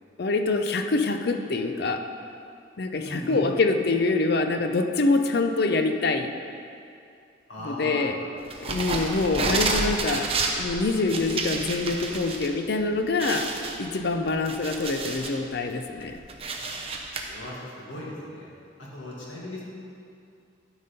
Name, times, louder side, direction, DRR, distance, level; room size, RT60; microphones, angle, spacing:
voice 1, 0.2-2.0 2.8-6.3 7.6-8.2 8.6-10.3 10.6-13.5 13.8-16.1, left 3 dB, 55° left, 6 dB, 0.5 m, -25 dB
voice 2, 3.0-3.4 7.5-8.7 17.2-17.6 17.9-18.5 18.8-19.6, left 1 dB, 85° left, -5 dB, 2.1 m, -37 dB
sound 1, 8.5-12.5 12.8-12.9 13.2-15.4 15.8-17.2, right 3 dB, 30° right, 0.6 m, -30 dB
12.5 x 4.1 x 5.2 m, 2.5 s
head